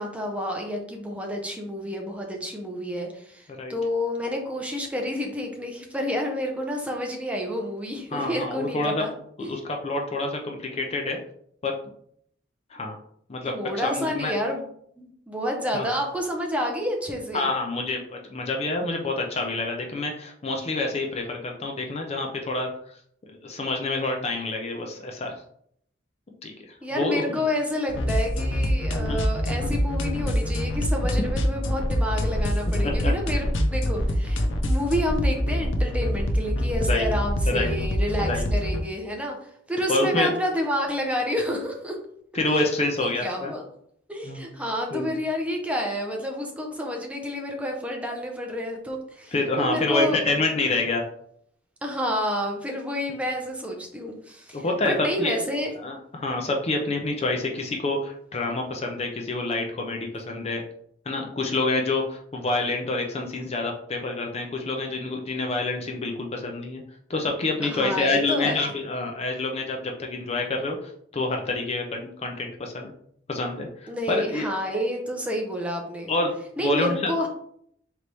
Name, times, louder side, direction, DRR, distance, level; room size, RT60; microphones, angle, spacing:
voice 1, 0.0-9.1 9.4-9.6 13.5-14.7 15.0-17.5 26.8-42.0 42.5-42.6 43.0-43.6 44.1-50.2 51.8-55.7 67.6-68.6 73.9-76.1 76.6-77.3, equal, 5° right, 1 dB, 0.7 m, -29 dB
voice 2, 8.1-9.1 9.4-11.2 11.6-11.7 12.7-13.0 13.3-14.3 15.7-15.9 17.3-22.7 23.3-25.3 26.4-27.4 29.0-29.2 29.6-29.7 32.8-33.1 33.6-33.7 36.9-37.1 37.5-37.7 38.2-38.4 39.9-40.3 42.3-43.5 44.2-44.4 44.9-45.1 49.3-51.0 54.5-55.4 55.8-60.6 61.1-66.8 67.1-72.9 73.3-74.5 76.1-76.3 76.6-77.1, left 2 dB, 35° left, 2 dB, 0.5 m, -27 dB
sound 1, 27.9-38.8, equal, 85° left, 0.6 m, -25 dB
3.9 x 3.0 x 3.3 m, 0.68 s
head